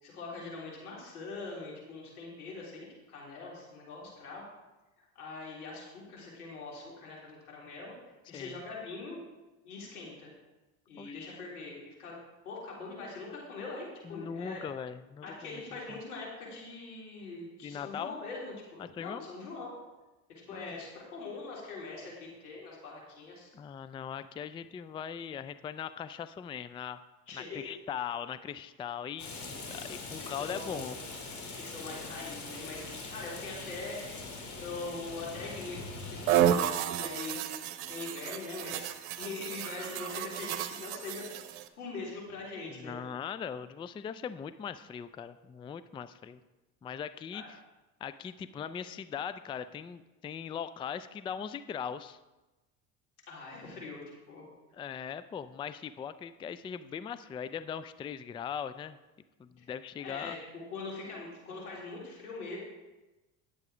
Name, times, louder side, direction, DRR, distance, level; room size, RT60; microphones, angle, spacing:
voice 1, 0.0-4.4 5.0-7.9 8.3-9.2 9.6-10.3 10.9-12.2 12.4-14.6 15.2-19.7 20.3-23.5 27.3-27.7 30.2-30.9 31.5-34.2 34.6-35.8 36.1-36.7 36.9-38.9 39.2-43.0 47.3-47.5 53.3-54.4 59.6-59.7 60.0-62.6, left 3 dB, 90° left, -4 dB, 3.7 m, -42 dB
voice 2, 11.0-11.4 14.0-15.6 15.9-16.0 17.6-18.1 18.8-19.3 20.5-20.8 23.5-27.0 27.3-31.0 42.7-46.4 46.8-47.4 48.0-52.2 54.7-59.0 59.4-60.4, left 8 dB, 15° left, 13 dB, 0.3 m, -40 dB
Rain, 29.2-36.4, left 3 dB, 40° left, 2.9 m, -42 dB
sound 1, 36.3-41.7, right 10 dB, 75° right, 0.9 m, -31 dB
11.0 x 7.9 x 5.0 m, 1.1 s
hypercardioid pair, 75°, 43 cm